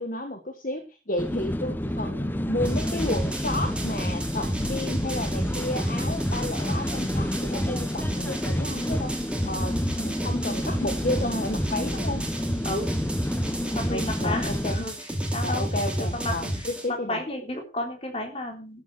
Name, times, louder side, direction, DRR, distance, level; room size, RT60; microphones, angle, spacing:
voice 1, 0.0-12.2 13.9-14.8 15.4-17.2, left 1 dB, 50° left, 6 dB, 1.5 m, -32 dB
sound 1, 1.2-14.8, left 1 dB, 10° left, 0.7 m, -29 dB
sound 2, 2.6-16.9, right 1 dB, 5° right, 2.5 m, -32 dB
voice 2, 13.6-14.9 15.3-15.6 16.0-18.8, left 1 dB, 30° left, 3 dB, 3.8 m, -32 dB
13.0 x 7.7 x 6.2 m, 0.33 s
head